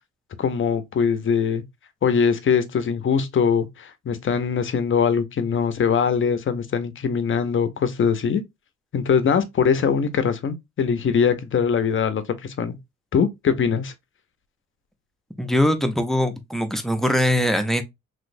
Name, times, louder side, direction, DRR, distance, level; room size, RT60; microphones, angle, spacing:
voice 1, 0.4-1.6 2.0-8.4 8.9-12.8 13.1-13.9, left 6 dB, 40° left, 0.6 m, -22 dB
voice 2, 15.4-17.8, left 1 dB, ahead, 0.6 m, -21 dB
3.1 x 3.0 x 2.6 m
cardioid pair, 90°, 30 cm